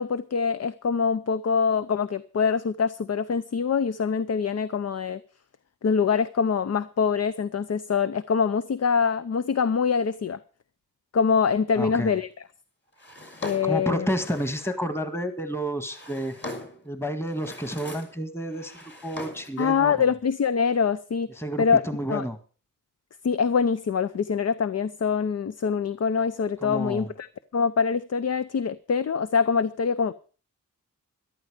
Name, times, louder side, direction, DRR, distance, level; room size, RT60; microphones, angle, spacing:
voice 1, 0.0-5.2 5.8-10.4 11.1-12.3 13.4-14.1 19.6-21.3 21.6-22.3 23.2-27.3 27.5-30.1, left 6 dB, 50° left, 0.7 m, -24 dB
voice 2, 11.7-12.2 13.6-16.3 16.8-18.7 19.0-20.0 21.4-22.4 26.6-27.1, equal, 5° left, 1.7 m, -30 dB
Drawer open or close, 13.0-14.8 15.6-16.9 17.3-18.2 18.5-19.6, left 2 dB, 30° left, 4.0 m, -41 dB
13.5 x 11.5 x 5.0 m
cardioid pair, 80°, 34 cm